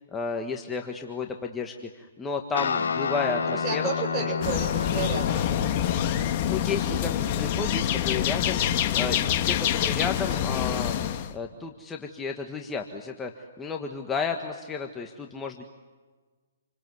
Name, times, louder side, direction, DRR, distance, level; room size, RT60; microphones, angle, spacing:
voice 1, 0.1-3.8 4.1-4.3 6.5-10.9 11.3-15.6, left 5 dB, 15° left, 2 dB, 1.6 m, -32 dB
Guitar, 2.5-10.2, left 7 dB, 75° left, 2.7 m, -32 dB
voice 2, 3.3-6.4, right 4 dB, 25° right, 2 dB, 7.0 m, -33 dB
sound 1, 4.4-11.3, left 10 dB, 40° left, 1.6 m, -26 dB
28.5 x 24.5 x 8.0 m, 1.4 s
hypercardioid pair, 135°, 0 cm